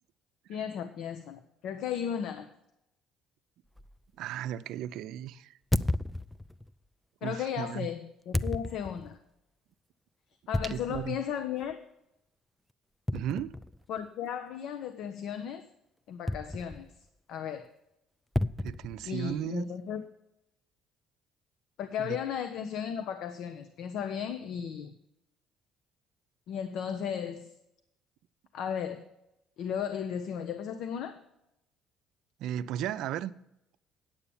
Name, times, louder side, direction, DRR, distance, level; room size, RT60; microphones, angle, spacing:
voice 1, 0.5-2.5 7.2-9.2 10.5-11.8 13.9-15.7 16.1-16.9 17.3-17.7 19.0-20.0 21.8-24.9 26.5-27.5 28.5-29.1 29.6-31.2, left 8 dB, 70° left, 0.7 m, -35 dB
sound 1, 3.8-4.0 5.7-6.7 8.3-9.2 10.5-11.2 11.6-11.7 13.1-14.0 16.3-17.1 18.4-19.5, left 1 dB, 5° left, 0.4 m, -33 dB
voice 2, 4.2-5.5 7.2-7.9 10.6-11.2 13.1-13.5 18.6-19.7 32.4-33.3, right 11 dB, 75° right, 0.5 m, -35 dB
9.8 x 7.0 x 7.0 m
supercardioid pair, 90°, 0 cm